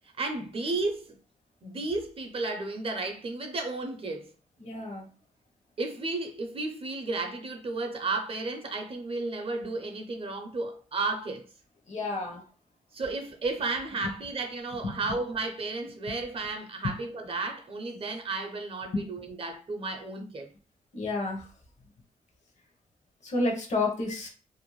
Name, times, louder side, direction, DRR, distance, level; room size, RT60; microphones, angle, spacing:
voice 1, 0.2-1.2 1.6-4.3 5.8-11.5 12.9-20.5, right 3 dB, 40° right, 0.6 m, -33 dB
voice 2, 4.6-5.1 11.9-12.4 14.0-14.1 14.8-15.1 16.8-17.0 18.9-19.1 20.9-21.5 23.2-24.3, left 2 dB, 55° left, 0.8 m, -30 dB
2.6 x 2.1 x 3.0 m
cardioid pair, 90°, 14 cm